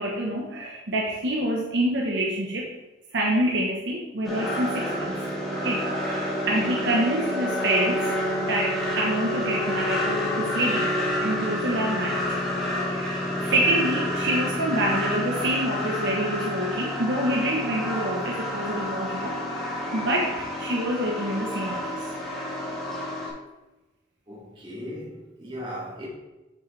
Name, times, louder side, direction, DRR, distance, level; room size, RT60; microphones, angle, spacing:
voice 1, 0.0-2.7 3.1-5.2 5.6-8.0 8.5-11.0 11.2-12.4 12.9-13.1 13.4-22.0, right 1 dB, 60° right, -2 dB, 1.0 m, -27 dB
sound 1, 4.2-23.3, left 1 dB, ahead, 1.8 m, -29 dB
voice 2, 24.3-26.1, equal, 25° right, -5 dB, 2.2 m, -37 dB
7.4 x 6.4 x 3.2 m, 1.1 s
head